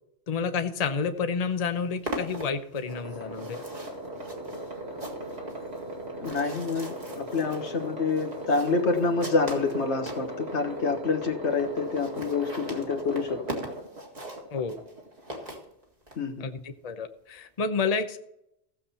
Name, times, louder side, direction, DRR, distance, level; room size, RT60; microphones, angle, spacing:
voice 1, 0.3-3.6 14.5-14.8 16.4-18.2, left 5 dB, 40° left, 8 dB, 0.8 m, -30 dB
sound 1, 1.1-1.2 1.4-10.3 10.9-11.0 11.2-11.3 11.5-11.6 11.8-16.2, right 1 dB, 35° right, 2.0 m, -40 dB
sound 2, 2.9-15.5, right 1 dB, 70° right, 2.5 m, -38 dB
voice 2, 6.2-13.6 16.2-16.4, left 4 dB, 85° left, 4 dB, 1.6 m, -27 dB
15.5 x 7.3 x 4.3 m, 0.80 s
omnidirectional pair, 1.1 m